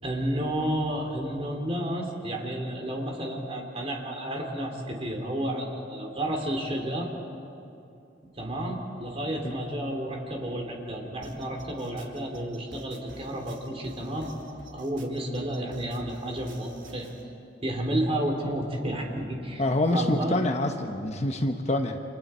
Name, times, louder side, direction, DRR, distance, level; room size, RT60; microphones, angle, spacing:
voice 1, 0.0-7.1 8.3-17.1 17.6-19.6 19.9-20.4, right 1 dB, 30° right, 1 dB, 3.1 m, -31 dB
sound 1, 11.2-17.2, right 1 dB, 85° right, 2.9 m, -49 dB
voice 2, 19.6-22.0, left 1 dB, 35° left, 5 dB, 1.1 m, -26 dB
30.0 x 27.0 x 4.4 m, 2.6 s
head